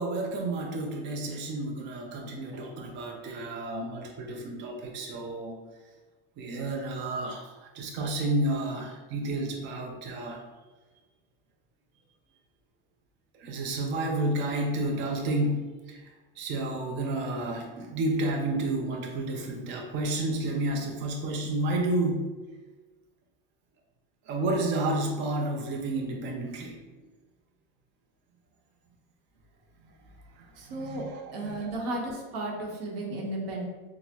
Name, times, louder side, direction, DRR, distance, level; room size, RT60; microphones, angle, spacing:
voice 1, 0.0-5.6 6.4-10.4 13.4-16.0 16.4-22.3 24.3-26.8 30.4-31.7, right 2 dB, 40° right, 1 dB, 0.6 m, -31 dB
voice 2, 30.6-31.0 31.3-33.6, right 2 dB, 85° right, -1 dB, 1.0 m, -34 dB
4.2 x 2.1 x 2.8 m, 1.3 s
supercardioid pair, 115°, 29 cm